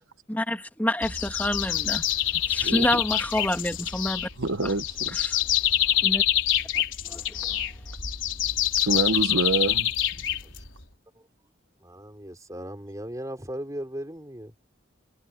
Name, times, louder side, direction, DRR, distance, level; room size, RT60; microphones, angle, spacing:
voice 1, 0.3-2.0 2.5-4.3 5.1-5.4 6.0-6.2 7.0-7.6, left 1 dB, 10° left, 2.8 m, -28 dB
sound 1, 1.0-10.8, left 11 dB, 70° left, 4.3 m, -26 dB
voice 2, 2.6-3.0 4.4-5.1 8.8-9.9, right 3 dB, 85° right, 1.1 m, -26 dB
voice 3, 11.8-14.5, equal, 15° right, 4.3 m, -37 dB
head